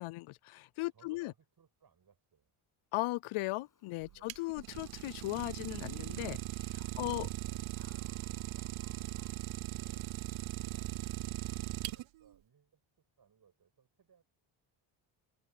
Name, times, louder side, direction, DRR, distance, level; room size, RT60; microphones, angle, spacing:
voice 1, 0.0-1.3 2.9-6.4 7.0-7.2, left 20 dB, 80° left, 0.6 m, -37 dB
voice 2, 0.9-2.5 4.1-4.5 6.6-9.2 9.6-10.2 10.6-14.2, right 7 dB, 45° right, 7.6 m, -66 dB
Dog, 3.3-12.0, left 6 dB, 40° left, 7.3 m, -69 dB
Idling, 4.0-12.3, right 18 dB, 70° right, 0.7 m, -39 dB
cardioid pair, 110°, 49 cm